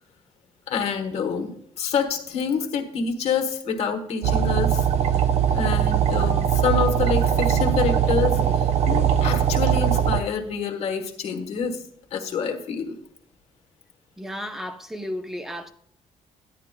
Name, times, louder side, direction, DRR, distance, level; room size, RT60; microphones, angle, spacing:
voice 1, 0.7-4.9 5.5-8.4 8.9-11.8 12.1-13.0, left 6 dB, 65° left, 1.2 m, -27 dB
sound 1, 4.2-10.2, right 9 dB, 65° right, 0.6 m, -21 dB
voice 2, 14.2-15.7, equal, 5° right, 0.7 m, -33 dB
12.0 x 9.9 x 2.2 m
cardioid pair, 150°, 12 cm